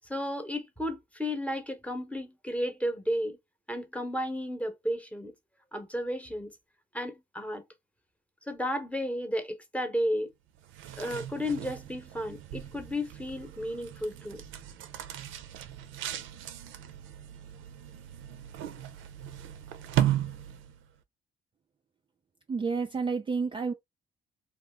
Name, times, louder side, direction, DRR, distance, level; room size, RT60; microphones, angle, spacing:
voice 1, 0.1-3.4 3.7-5.3 5.7-6.5 6.9-7.6 8.5-10.3 11.0-14.4, equal, 5° left, 0.8 m, -33 dB
sound 1, 10.6-20.9, right 12 dB, 85° right, 0.5 m, -36 dB
voice 2, 22.5-23.7, right 4 dB, 25° right, 0.4 m, -30 dB
2.6 x 2.4 x 3.5 m
cardioid pair, 90°, 20 cm